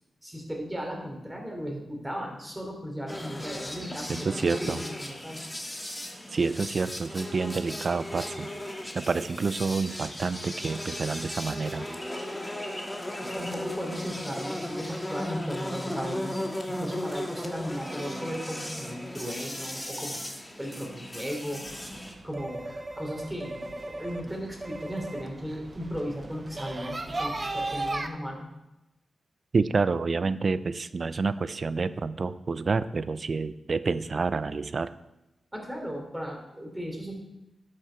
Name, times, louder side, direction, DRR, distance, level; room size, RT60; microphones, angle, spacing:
voice 1, 0.2-5.4 13.2-16.4 16.7-20.2 20.6-21.6 22.2-22.6 23.0-28.5 35.5-37.2, equal, 10° right, 0 dB, 3.1 m, -36 dB
sound 1, 3.1-22.1, left 1 dB, 15° left, 1.6 m, -36 dB
voice 2, 4.1-4.8 6.3-8.5 8.9-11.9 29.5-34.9, right 4 dB, 55° right, 15 dB, 0.5 m, -28 dB
sound 2, 21.7-28.1, right 2 dB, 35° right, 0.8 m, -36 dB
12.0 x 6.4 x 4.5 m, 0.96 s
cardioid pair, 55°, 0 cm